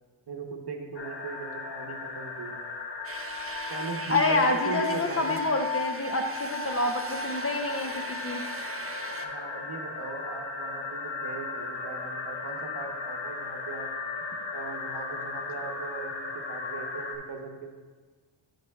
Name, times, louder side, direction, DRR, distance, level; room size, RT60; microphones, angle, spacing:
voice 1, 0.3-2.6 3.7-5.4 9.2-13.9 14.5-17.7, right 4 dB, 55° right, 3 dB, 0.9 m, -38 dB
sound 1, 1.0-17.2, left 4 dB, 65° left, 0.9 m, -35 dB
sound 2, 3.0-9.3, right 4 dB, 30° right, 0.5 m, -41 dB
voice 2, 4.1-8.4, left 2 dB, 30° left, 4 dB, 0.6 m, -28 dB
9.8 x 5.7 x 2.3 m, 1.4 s
cardioid pair, 60°, 47 cm